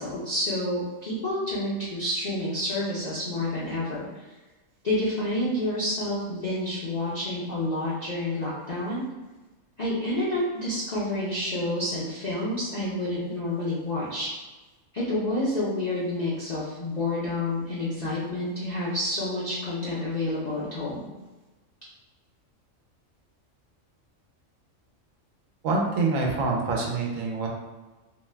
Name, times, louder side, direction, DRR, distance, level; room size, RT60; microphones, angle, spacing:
voice 1, 0.0-4.2 4.8-9.0 9.8-14.3 14.9-21.1, left 1 dB, 55° left, -9 dB, 0.4 m, -29 dB
voice 2, 25.6-27.5, right 3 dB, 75° right, -1 dB, 1.0 m, -26 dB
2.6 x 2.2 x 3.2 m, 1.2 s
omnidirectional pair, 1.4 m